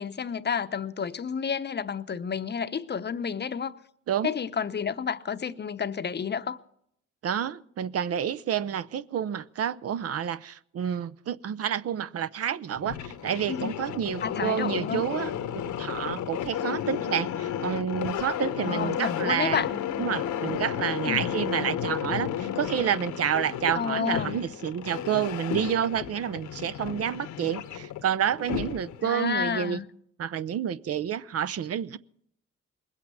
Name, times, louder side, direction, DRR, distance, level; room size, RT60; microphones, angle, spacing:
voice 1, 0.0-3.8 4.2-6.6 13.5-13.7 14.2-15.1 18.6-19.7 21.1-21.4 23.7-24.4 29.0-29.9, left 7 dB, 35° left, 0.8 m, -30 dB
voice 2, 7.2-15.3 15.8-19.7 20.0-29.8 30.2-32.0, right 9 dB, 50° right, 0.6 m, -29 dB
sound 1, 12.7-29.1, left 9 dB, 75° left, 1.1 m, -33 dB
20.5 x 8.3 x 8.6 m
cardioid pair, 90°, 30 cm